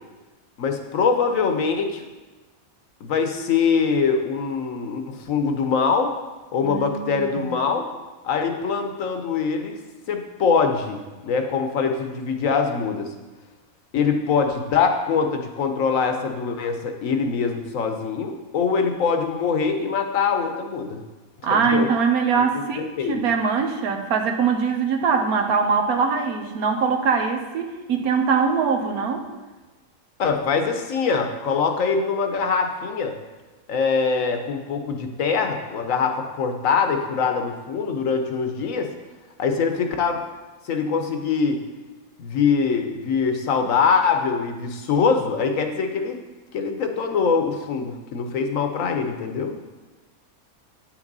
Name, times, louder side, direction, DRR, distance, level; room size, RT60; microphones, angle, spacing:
voice 1, 0.6-2.0 3.0-6.1 6.5-7.9 8.2-9.8 10.1-13.1 13.9-21.0 21.5-21.9 22.3-22.4 22.8-23.2 30.2-33.2 33.7-38.9 39.4-40.2 40.6-41.6 42.2-46.2 46.5-49.6, left 5 dB, 70° left, 5 dB, 1.2 m, -23 dB
voice 2, 6.6-7.5 21.4-29.3, right 5 dB, 85° right, 4 dB, 1.3 m, -22 dB
9.6 x 6.0 x 4.0 m, 1.2 s
omnidirectional pair, 1.5 m